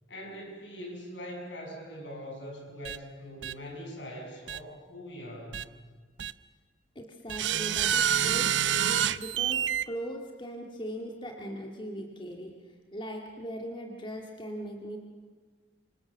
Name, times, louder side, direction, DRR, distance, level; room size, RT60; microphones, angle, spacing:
voice 1, 0.1-5.6, equal, 75° left, 0 dB, 7.3 m, -42 dB
sound 1, 2.8-3.0 3.4-3.5 4.5-4.6 5.5-5.6 6.2-6.3 7.3-9.8, right 9 dB, 85° right, 0.7 m, -27 dB
voice 2, 7.0-12.5 12.9-15.0, equal, 25° left, 2 dB, 2.0 m, -39 dB
27.0 x 25.5 x 7.2 m, 1.5 s
head